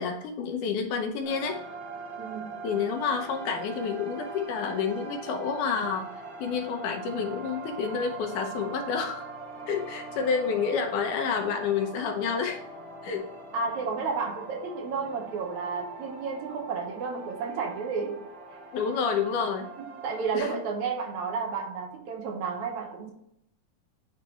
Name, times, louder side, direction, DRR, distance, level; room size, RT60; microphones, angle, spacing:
voice 1, 0.0-1.6 2.6-9.3 9.7-12.6 13.0-13.3 18.7-19.7 20.3-20.6, left 6 dB, 75° left, 4 dB, 2.3 m, -29 dB
sound 1, 1.2-20.4, right 3 dB, 5° left, 1.6 m, -42 dB
voice 2, 2.2-2.6 13.5-18.2 20.0-23.1, right 5 dB, 70° right, 1 dB, 2.2 m, -32 dB
9.4 x 3.3 x 3.1 m, 0.74 s
omnidirectional pair, 3.7 m